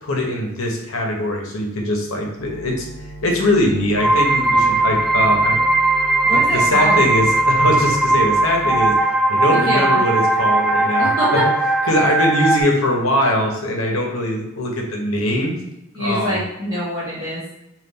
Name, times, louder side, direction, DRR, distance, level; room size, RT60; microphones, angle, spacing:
voice 1, 0.0-2.9 3.2-5.6 6.0-6.2 6.5-8.9 9.3-11.4 11.9-15.5 16.0-16.4, left 1 dB, 85° left, 0 dB, 0.9 m, -21 dB
sound 1, 2.4-8.9, right 2 dB, 40° left, 1.0 m, -37 dB
sound 2, 4.0-12.6, right 2 dB, ahead, 0.3 m, -18 dB
voice 2, 6.2-7.0 9.5-10.0 11.0-11.4 15.9-17.5, equal, 20° right, -10 dB, 1.0 m, -24 dB
3.6 x 2.5 x 3.9 m, 0.89 s
head